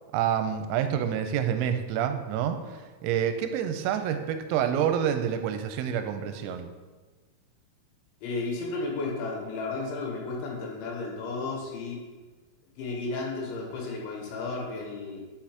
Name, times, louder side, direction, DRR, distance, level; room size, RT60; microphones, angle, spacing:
voice 1, 0.1-6.7, right 9 dB, 90° right, 8 dB, 3.3 m, -28 dB
voice 2, 8.2-12.0 12.8-15.2, left 3 dB, 75° left, -1 dB, 3.2 m, -33 dB
12.0 x 6.1 x 2.9 m, 1.3 s
omnidirectional pair, 6.0 m